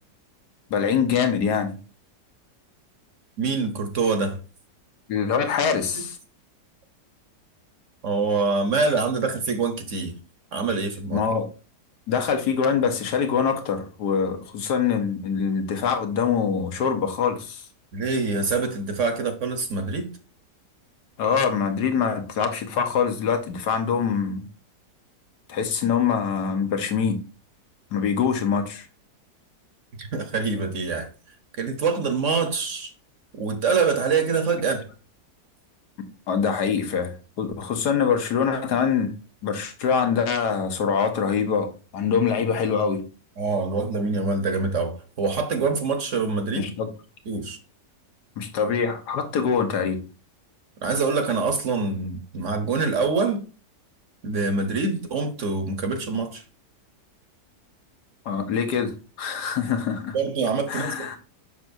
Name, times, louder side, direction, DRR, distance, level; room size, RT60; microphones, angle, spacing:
voice 1, 0.7-1.8 5.1-6.2 11.1-11.5 12.1-17.6 21.2-24.4 25.5-27.2 27.9-28.9 36.3-39.1 39.4-43.0 46.5-46.9 48.4-50.0 58.2-60.2 60.7-61.2, left 6 dB, 75° left, 1.6 m, -24 dB
voice 2, 3.4-4.4 5.9-6.0 8.0-10.1 10.5-11.2 17.9-20.1 30.0-31.1 31.6-32.9 33.4-34.9 43.4-46.7 47.3-47.6 50.8-53.4 54.2-56.4 60.1-61.2, right 4 dB, 50° right, 1.2 m, -25 dB
6.8 x 6.0 x 2.6 m
omnidirectional pair, 1.8 m